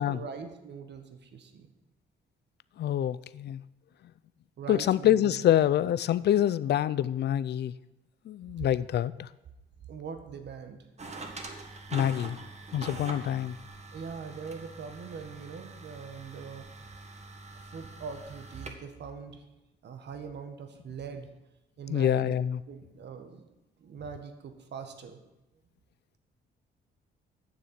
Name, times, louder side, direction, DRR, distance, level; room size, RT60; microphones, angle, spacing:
voice 1, 0.0-1.7 4.6-5.5 8.6-8.7 9.9-10.8 13.9-16.6 17.5-19.4 19.8-21.3 21.8-22.4 22.7-23.5 23.8-25.2, right 6 dB, 60° right, 1.6 m, -42 dB
voice 2, 2.8-3.6 4.7-7.7 8.3-9.3 11.9-12.4 12.7-13.6 21.9-22.6, left 11 dB, 55° left, 0.5 m, -26 dB
sound 1, 11.0-18.7, right 3 dB, 35° right, 1.6 m, -44 dB
9.6 x 6.9 x 7.6 m
cardioid pair, 90°, 20 cm